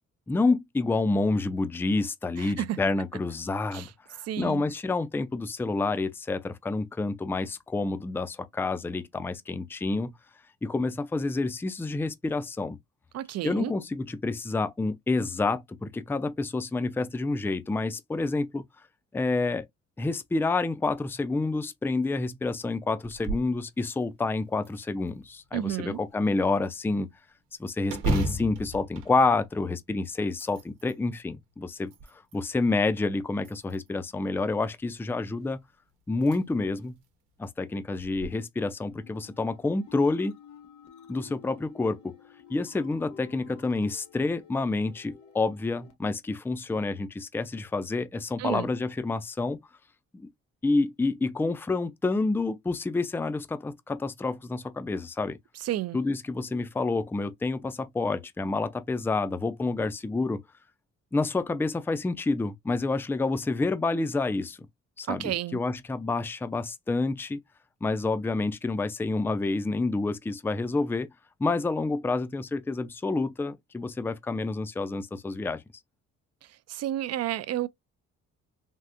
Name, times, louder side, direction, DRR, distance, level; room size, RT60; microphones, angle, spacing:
voice 1, 0.3-10.1 10.6-12.8 13.4-18.6 19.1-19.6 20.0-27.1 27.6-35.6 36.1-37.0 37.4-40.3 41.1-42.2 42.5-49.6 50.1-50.3 50.6-55.4 55.9-60.4 61.1-64.6 65.0-67.4 67.8-71.1 71.4-75.6, left 3 dB, 5° left, 0.4 m, -28 dB
voice 2, 2.4-2.8 3.7-3.9 4.2-4.6 13.1-13.7 25.5-26.0 48.4-48.7 55.6-56.0 65.1-65.6 76.7-77.7, right 13 dB, 55° right, 0.4 m, -31 dB
sound 1, 23.0-23.6 24.0-24.1 24.6-25.5 27.9-29.9 30.3-31.0 31.6-32.5 33.4-34.1 35.5-35.6 36.1-36.4 36.8-36.9 38.0-38.3, right 2 dB, 90° right, 1.0 m, -33 dB
sound 2, 38.9-45.9, left 7 dB, 70° left, 1.0 m, -52 dB
3.5 x 2.5 x 2.5 m
cardioid pair, 90°, 30 cm